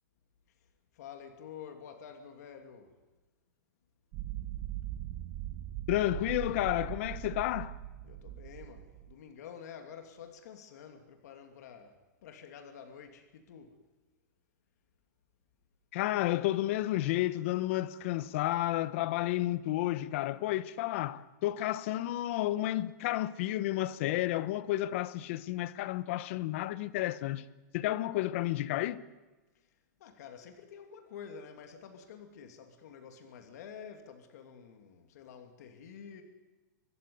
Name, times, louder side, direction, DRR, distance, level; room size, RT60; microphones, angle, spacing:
voice 1, 0.9-2.9 8.0-13.7 30.0-36.2, left 7 dB, 60° left, 2.8 m, -49 dB
sound 1, 4.1-9.1, right 13 dB, 30° right, 1.1 m, -40 dB
voice 2, 5.9-7.8 15.9-27.5 27.7-29.0, left 15 dB, 45° left, 0.9 m, -31 dB
25.0 x 14.5 x 9.6 m
supercardioid pair, 170°, 10 cm